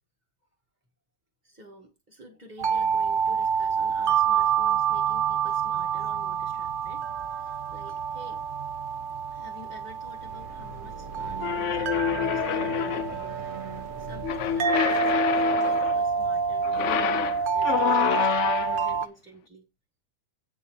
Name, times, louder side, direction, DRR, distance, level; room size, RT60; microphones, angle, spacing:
voice 1, 1.4-8.4 9.3-13.4 13.7-19.7, equal, 10° right, 1.4 m, -49 dB
sound 1, 2.6-19.1, right 6 dB, 60° right, 0.5 m, -27 dB
sound 2, 10.0-16.3, right 3 dB, 25° right, 1.3 m, -42 dB
sound 3, 11.4-13.3 14.2-16.0 16.6-18.9, left 10 dB, 65° left, 0.8 m, -27 dB
8.2 x 5.5 x 4.8 m
omnidirectional pair, 1.5 m